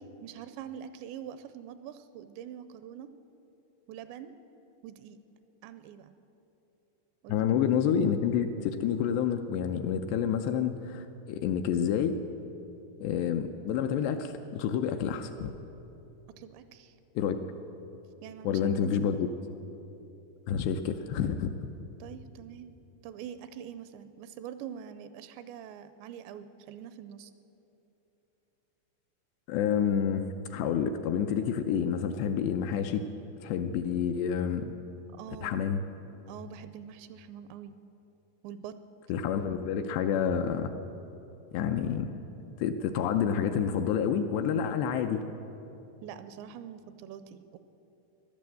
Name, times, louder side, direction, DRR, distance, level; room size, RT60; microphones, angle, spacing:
voice 1, 0.0-3.1 3.9-4.3 4.8-5.2 5.6-6.1 7.2-7.4 16.4-17.0 18.2-19.3 22.0-22.7 23.0-27.3 35.1-35.6 36.3-37.8 38.4-38.7 46.0-47.6, right 9 dB, 85° right, 12 dB, 2.7 m, -44 dB
voice 2, 7.3-12.2 13.0-15.5 17.2-17.4 18.4-19.3 20.5-21.5 29.5-33.0 33.4-34.7 35.4-35.8 39.1-40.7 41.5-42.1 42.6-45.2, left 8 dB, 80° left, 6 dB, 2.6 m, -28 dB
15.5 x 11.5 x 7.6 m, 3.0 s
omnidirectional pair, 5.2 m